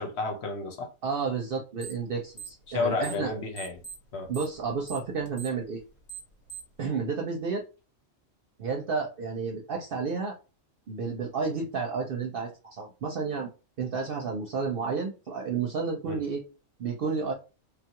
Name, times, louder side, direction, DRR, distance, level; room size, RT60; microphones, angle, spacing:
voice 1, 0.0-0.9 2.7-3.8 4.1-4.3 16.1-16.2, left 4 dB, 65° left, 1.1 m, -31 dB
voice 2, 1.0-3.3 4.3-5.8 6.8-7.6 8.6-10.3 10.9-13.5 13.8-16.4 16.8-17.3, right 5 dB, 60° right, 0.7 m, -31 dB
sound 1, 1.8-2.1 2.3-3.3 3.6-6.8, right 7 dB, 40° left, 0.9 m, -42 dB
3.5 x 2.3 x 2.8 m
omnidirectional pair, 1.2 m